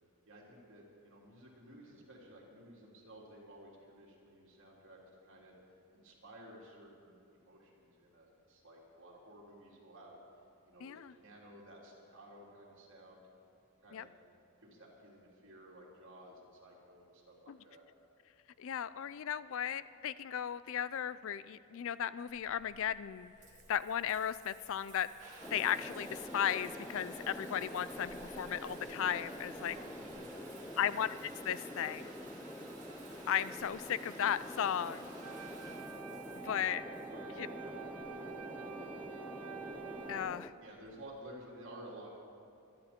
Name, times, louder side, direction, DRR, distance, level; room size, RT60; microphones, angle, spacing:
voice 1, 0.3-5.5 5.9-10.2 10.7-13.2 13.8-14.1 14.6-17.8 29.5-30.3 30.8-30.9 37.1-37.7 40.6-42.1, right 1 dB, 60° right, -4 dB, 3.4 m, -54 dB
voice 2, 10.8-11.1 13.9-14.1 17.5-17.6 18.6-23.3 23.7-25.1 25.5-29.8 30.8-32.1 33.3-35.1 36.4-36.8 37.4-37.5 40.1-40.5, left 9 dB, 60° left, 16 dB, 0.4 m, -35 dB
Water tap faucet / Bathtub (filling or washing) / Trickle dribble, 22.3-41.2, right 2 dB, 35° right, 2.9 m, -55 dB
sound 1, 25.4-40.5, left 1 dB, 5° left, 0.5 m, -46 dB
sound 2, 35.2-40.2, right 8 dB, 85° right, 0.6 m, -48 dB
25.0 x 10.5 x 4.4 m, 2.7 s
head